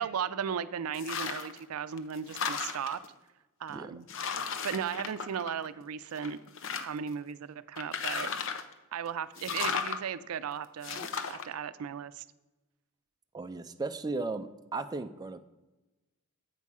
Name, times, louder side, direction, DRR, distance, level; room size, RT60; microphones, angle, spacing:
voice 1, 0.0-3.0 3.6-4.1 4.6-6.4 6.8-8.3 8.9-11.0 11.3-12.2, right 7 dB, 80° right, 14 dB, 0.4 m, -36 dB
sound 1, 0.9-1.6 2.0-3.1 3.7-3.8 4.1-5.8 6.2-7.1 7.8-8.7 9.4-10.0 10.8-11.4, left 6 dB, 60° left, 0.7 m, -35 dB
voice 2, 13.3-15.4, right 3 dB, 20° right, 7 dB, 0.4 m, -36 dB
8.4 x 5.5 x 4.7 m, 1.1 s
head